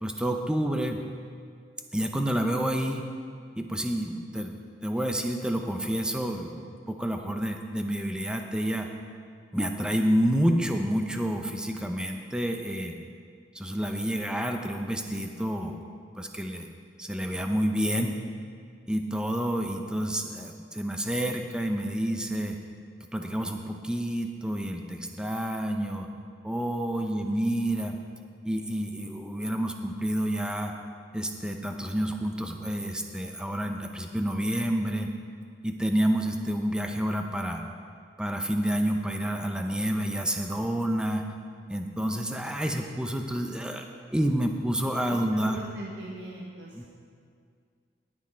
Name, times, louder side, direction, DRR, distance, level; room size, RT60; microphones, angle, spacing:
voice 1, 0.0-1.0 1.9-3.0 3.6-8.9 9.5-12.9 13.5-15.8 16.2-16.7 17.0-18.1 18.9-22.6 23.1-26.1 26.4-28.0 28.4-30.7 31.1-35.1 35.6-37.6 38.2-41.2 41.7-43.8 44.1-45.6 46.7-46.9, equal, 5° right, 4 dB, 0.7 m, -29 dB
voice 2, 27.0-27.4 45.0-46.9, right 1 dB, 85° right, -4 dB, 1.3 m, -41 dB
18.0 x 6.3 x 4.4 m, 2.2 s
head